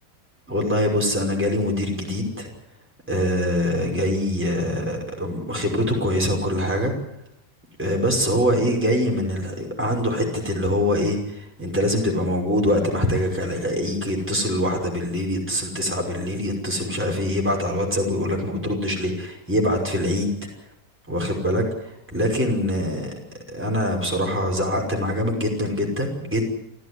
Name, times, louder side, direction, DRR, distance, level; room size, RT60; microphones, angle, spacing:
voice 1, 0.5-2.5 3.1-6.9 7.8-20.3 21.1-23.1 23.5-26.5, left 1 dB, 5° right, -1 dB, 5.7 m, -24 dB
29.5 x 14.0 x 9.9 m, 0.82 s
omnidirectional pair, 1.8 m